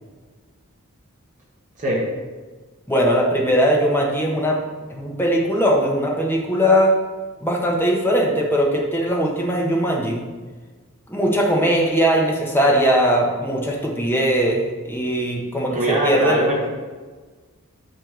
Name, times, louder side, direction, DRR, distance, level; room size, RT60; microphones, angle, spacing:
voice 1, 1.8-2.2 15.7-16.7, right 1 dB, 35° right, -5 dB, 1.5 m, -22 dB
voice 2, 2.9-4.6 4.9-7.0 7.4-10.3 11.1-16.5, equal, 10° left, -1 dB, 1.3 m, -20 dB
9.2 x 3.3 x 6.7 m, 1.4 s
head